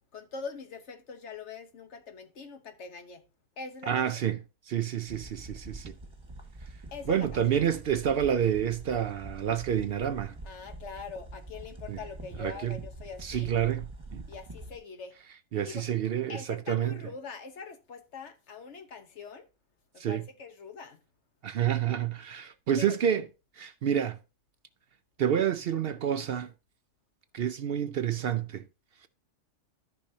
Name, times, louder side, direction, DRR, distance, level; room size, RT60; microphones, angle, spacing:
voice 1, 0.1-3.2 3.6-4.1 6.9-7.4 10.4-13.5 14.3-15.2 15.6-15.8 16.3-19.5 19.9-21.0 22.8-23.0, left 5 dB, 70° left, 1.4 m, -43 dB
voice 2, 3.9-4.4 4.7-5.9 7.1-10.4 11.9-12.0 12.4-12.8 13.2-14.2 15.5-17.0 20.0-20.2 21.4-23.2 23.6-24.2 25.2-26.5 27.3-28.6, right 9 dB, 65° right, 0.7 m, -28 dB
sound 1, 5.1-14.8, right 1 dB, 25° right, 1.7 m, -45 dB
14.0 x 5.4 x 2.8 m
omnidirectional pair, 1.2 m